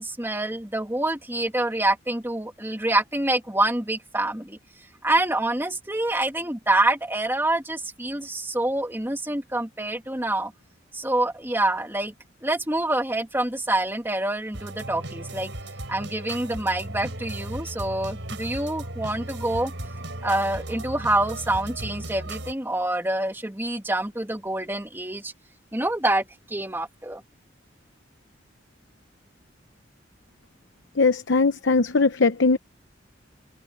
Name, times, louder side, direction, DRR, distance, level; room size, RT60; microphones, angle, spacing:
voice 1, 0.0-4.6 5.0-10.5 10.9-12.1 12.4-15.5 15.9-19.7 20.2-25.3 25.7-27.2, right 1 dB, 10° right, 2.2 m, -26 dB
sound 1, 14.5-22.5, right 1 dB, 70° right, 6.0 m, -36 dB
voice 2, 31.0-32.6, left 4 dB, 75° left, 0.8 m, -20 dB
head